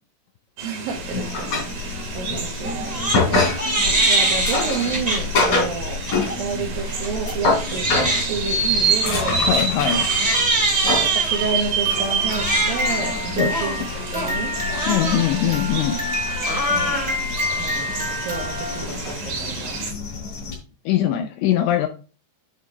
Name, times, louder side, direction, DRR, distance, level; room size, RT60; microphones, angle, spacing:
sound 1, 0.6-19.9, right 6 dB, 55° right, 3.1 m, -28 dB
voice 1, 0.6-3.1 3.9-9.4 9.8-9.9 11.1-14.6 15.0-15.3 16.7-17.1 17.6-19.8, right 5 dB, 75° right, 1 dB, 2.1 m, -30 dB
sound 2, 0.9-20.6, left 3 dB, 40° left, 4.4 m, -27 dB
Crying sobbing, 2.6-3.2 3.5-5.6 6.1-6.3 6.9-18.8, right 1 dB, 10° right, 2.6 m, -25 dB
voice 2, 9.5-10.1 13.4-13.5 14.9-16.0 20.9-21.9, left 10 dB, 80° left, 6 dB, 2.6 m, -21 dB
9.3 x 6.2 x 3.3 m, 0.35 s
omnidirectional pair, 5.9 m